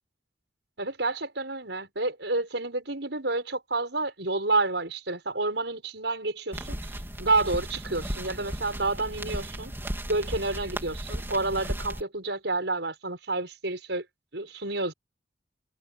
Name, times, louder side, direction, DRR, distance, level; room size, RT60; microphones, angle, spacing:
voice 1, 0.8-6.8 7.2-9.7 10.1-14.0 14.3-14.9, right 3 dB, 80° right, 6.0 m, -29 dB
sound 1, 6.5-12.0, equal, 15° right, 3.8 m, -35 dB
head